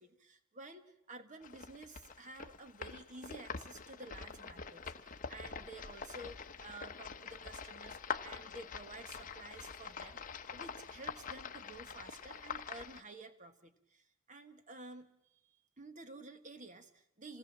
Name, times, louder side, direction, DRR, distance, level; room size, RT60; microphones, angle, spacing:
voice 1, 0.0-17.4, right 2 dB, 35° right, 9 dB, 1.6 m, -52 dB
sound 1, 1.4-13.0, left 6 dB, 40° left, 0.9 m, -45 dB
28.0 x 18.5 x 7.5 m, 0.79 s
head